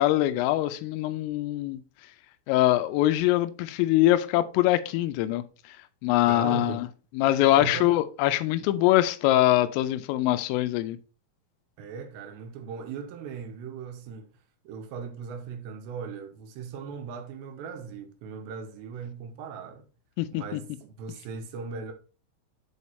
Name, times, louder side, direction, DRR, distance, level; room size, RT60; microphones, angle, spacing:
voice 1, 0.0-1.8 2.5-5.4 6.0-6.9 7.2-11.0 20.2-20.4, left 15 dB, 85° left, 3.1 m, -23 dB
voice 2, 6.3-6.8 7.2-7.9 11.8-14.3 14.6-19.9 20.3-21.9, right 6 dB, 80° right, 2.7 m, -38 dB
8.5 x 4.3 x 4.2 m
omnidirectional pair, 5.7 m